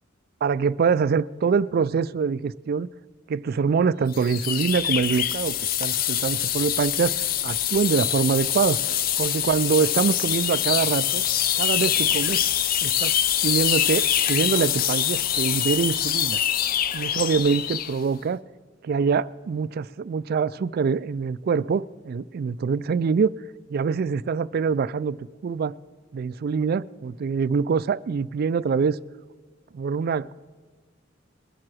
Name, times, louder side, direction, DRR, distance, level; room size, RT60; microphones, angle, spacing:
voice 1, 0.4-2.9 3.3-7.1 7.4-8.8 9.2-11.2 11.6-12.4 12.8-13.1 13.4-16.4 16.9-18.4 18.8-23.3 23.7-25.8 26.1-29.0 29.7-30.4, right 5 dB, 50° right, 0.3 m, -24 dB
sound 1, 4.1-18.0, left 10 dB, 45° left, 0.5 m, -24 dB
21.5 x 7.5 x 6.2 m
head